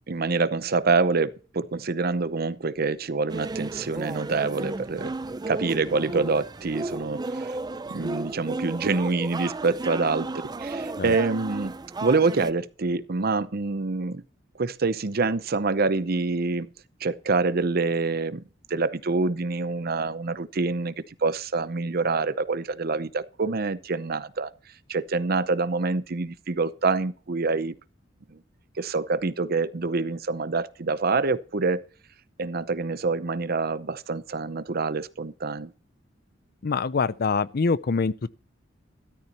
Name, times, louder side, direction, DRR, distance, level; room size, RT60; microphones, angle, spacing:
voice 1, 0.1-5.1 5.5-7.6 7.9-11.7 12.0-14.2 14.6-16.7 17.0-18.4 18.7-20.9 21.2-24.5 24.9-27.7 28.3-28.4 28.8-31.8 32.4-35.7, right 3 dB, 55° right, 0.7 m, -26 dB
sound 1, 3.3-12.5, right 2 dB, 20° right, 0.5 m, -34 dB
voice 2, 36.6-38.3, left 4 dB, 55° left, 0.5 m, -25 dB
13.5 x 13.0 x 3.0 m
head